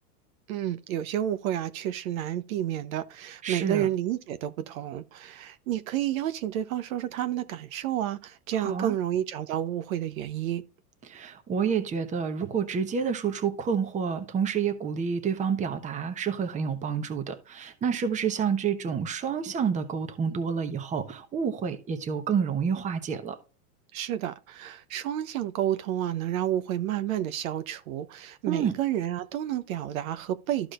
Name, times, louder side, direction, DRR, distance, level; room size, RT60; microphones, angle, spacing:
voice 1, 0.5-10.6 23.9-30.7, right 11 dB, 55° right, 0.8 m, -30 dB
voice 2, 3.4-3.9 8.5-8.9 11.0-23.4 28.5-28.7, right 6 dB, 15° right, 1.0 m, -29 dB
13.5 x 4.9 x 2.4 m
hypercardioid pair, 135°, 48 cm